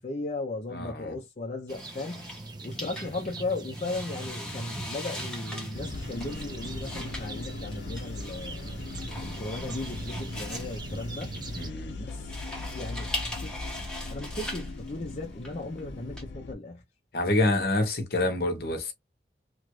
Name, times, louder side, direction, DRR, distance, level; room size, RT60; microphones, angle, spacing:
voice 1, 0.0-2.3 2.6-8.8 9.2-11.4 12.0-12.4 12.7-13.6 14.1-16.8, left 2 dB, 40° left, 0.5 m, -36 dB
voice 2, 0.7-1.2 11.5-11.9 17.1-18.9, left 2 dB, 60° left, 0.9 m, -27 dB
sound 1, 1.7-16.2, left 1 dB, 5° left, 1.0 m, -41 dB
sound 2, 1.7-11.7, right 2 dB, 25° right, 0.6 m, -41 dB
sound 3, 5.7-16.5, left 3 dB, 85° left, 0.6 m, -39 dB
3.0 x 2.4 x 3.0 m
head